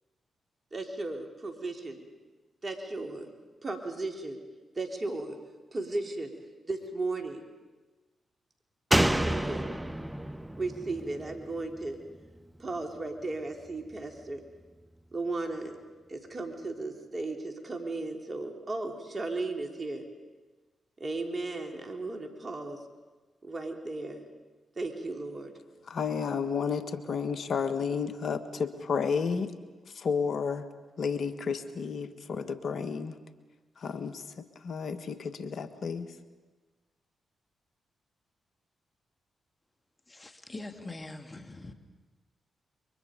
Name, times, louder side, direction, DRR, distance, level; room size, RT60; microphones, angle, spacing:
voice 1, 0.7-2.1 2.6-3.3 3.6-4.4 4.8-5.4 5.7-6.3 6.7-7.4 8.9-9.6 10.6-12.0 12.6-14.4 15.1-15.7 16.1-20.0 21.0-22.8 23.4-24.2 24.8-25.5, right 2 dB, 40° right, 4 dB, 3.7 m, -35 dB
Slam, 8.9-12.4 12.7-12.8, right 1 dB, 10° right, 1.0 m, -30 dB
voice 2, 25.9-29.5 29.9-30.7 31.0-33.2 33.8-36.2, left 6 dB, 65° left, 10 dB, 1.6 m, -32 dB
voice 3, 40.1-41.7, left 2 dB, 30° left, 6 dB, 2.8 m, -43 dB
28.5 x 23.5 x 5.3 m, 1.2 s
supercardioid pair, 45°, 0 cm